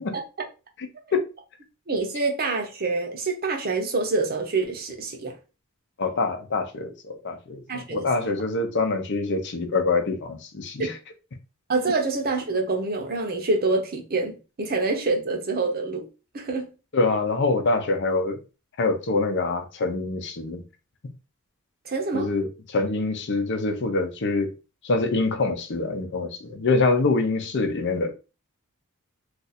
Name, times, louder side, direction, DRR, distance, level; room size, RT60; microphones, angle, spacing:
voice 1, 1.9-5.3 7.7-8.1 10.8-10.9 11.7-16.1 16.3-16.7 21.8-22.3, right 3 dB, 45° right, 0.7 m, -26 dB
voice 2, 6.0-10.9 16.9-18.4 18.8-20.6 22.1-24.5 24.8-28.1, left 3 dB, 55° left, 0.6 m, -25 dB
2.5 x 2.5 x 4.1 m
head